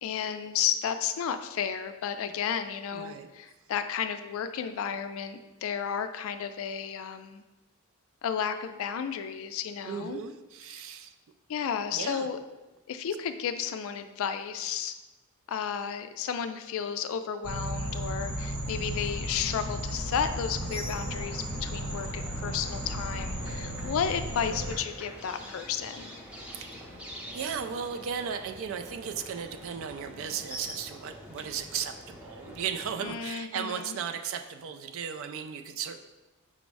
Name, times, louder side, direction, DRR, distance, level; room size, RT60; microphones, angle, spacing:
voice 1, 0.0-7.4 8.2-10.2 10.7-10.8 11.5-12.4 12.9-14.9 15.5-26.1 33.0-34.0, left 7 dB, 65° left, 9 dB, 0.3 m, -33 dB
voice 2, 2.9-3.3 9.8-11.1 11.9-12.3 26.5-27.0 27.3-36.0, right 7 dB, 60° right, 7 dB, 0.3 m, -36 dB
sound 1, 17.4-24.7, equal, 80° right, 0.7 m, -34 dB
sound 2, 20.5-33.1, equal, 5° right, 0.5 m, -45 dB
5.0 x 2.1 x 4.6 m, 1.1 s
head